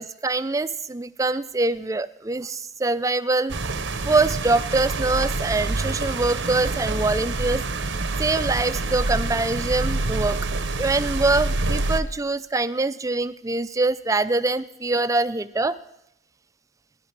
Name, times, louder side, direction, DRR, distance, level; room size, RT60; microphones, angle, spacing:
voice 1, 0.0-3.6 4.0-7.6 8.2-10.5 10.8-15.8, right 3 dB, 15° right, 14 dB, 0.4 m, -24 dB
sound 1, 3.5-12.0, right 2 dB, 75° right, 0.9 m, -27 dB
15.5 x 11.0 x 5.9 m, 0.82 s
head